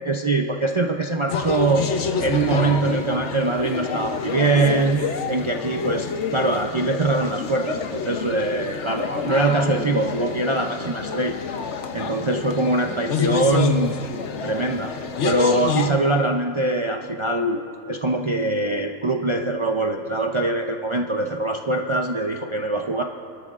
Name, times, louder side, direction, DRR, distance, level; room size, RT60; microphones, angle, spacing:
voice 1, 0.1-1.9 2.2-5.0 5.3-11.4 11.9-14.1 14.4-14.9 15.2-17.6 17.9-23.0, right 2 dB, 45° right, 2 dB, 0.3 m, -23 dB
sound 1, 1.3-15.9, left 6 dB, 65° left, 1.1 m, -28 dB
26.0 x 13.0 x 2.4 m, 2.7 s
omnidirectional pair, 1.3 m